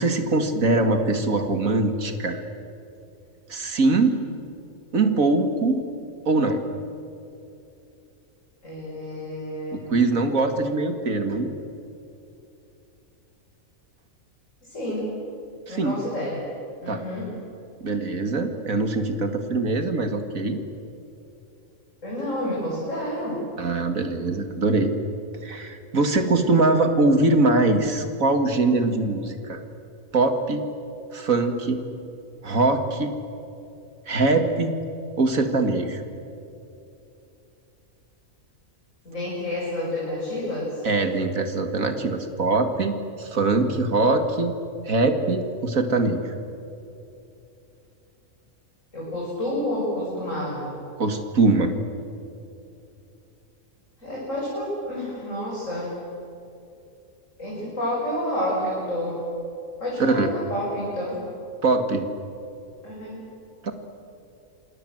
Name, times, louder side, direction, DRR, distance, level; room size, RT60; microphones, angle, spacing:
voice 1, 0.0-2.4 3.5-4.2 4.9-5.8 6.3-6.6 9.9-11.5 15.7-16.0 16.9-17.0 17.8-20.6 23.6-24.9 25.4-29.6 30.1-30.7 31.1-31.8 32.4-33.1 34.1-34.7 35.2-36.0 40.8-44.5 44.8-46.3 51.0-51.7 60.0-60.3 61.6-62.1 63.6-63.7, right 3 dB, 75° right, 7 dB, 2.5 m, -22 dB
voice 2, 8.6-10.0 14.6-15.0 15.7-16.5 16.8-17.3 22.0-23.4 39.0-40.9 48.9-50.8 54.0-55.9 57.4-59.2 59.8-61.2 62.8-63.2, left 1 dB, 65° left, -6 dB, 7.7 m, -29 dB
28.0 x 26.5 x 7.9 m, 2.8 s
omnidirectional pair, 1.4 m